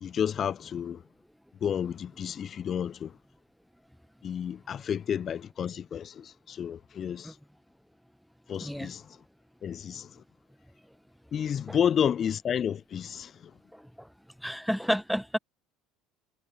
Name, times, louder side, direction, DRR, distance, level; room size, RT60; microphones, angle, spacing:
voice 1, 0.0-1.0 1.6-3.1 4.2-7.4 8.5-9.2 9.6-10.2 11.3-13.5, left 8 dB, 40° left, 0.7 m, -31 dB
voice 2, 14.4-15.4, equal, ahead, 1.4 m, -30 dB
figure-of-eight pair, 65°, 0 cm